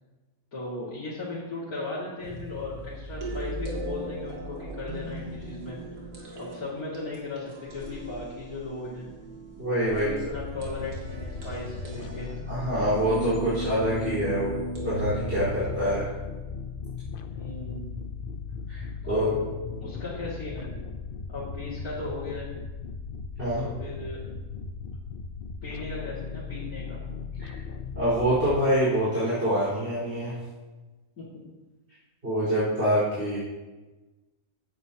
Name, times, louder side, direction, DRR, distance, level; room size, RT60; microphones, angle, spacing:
voice 1, 0.5-5.8 6.4-9.1 9.7-12.3 15.4-15.9 17.3-17.9 19.0-19.4 19.8-20.7 21.3-22.5 23.5-24.2 25.6-27.0 31.2-31.3, left 2 dB, 80° left, -9 dB, 2.9 m, -37 dB
sound 1, 2.2-15.6, right 1 dB, 70° right, 2.1 m, -38 dB
voice 2, 9.6-10.1 12.5-14.5 14.8-16.0 18.7-18.8 19.1-19.4 23.4-23.6 28.0-30.3 32.2-33.4, equal, 45° right, -11 dB, 4.9 m, -25 dB
sound 2, 10.3-28.6, left 5 dB, 50° left, 0.7 m, -37 dB
15.0 x 9.9 x 2.9 m, 1.2 s
omnidirectional pair, 1.5 m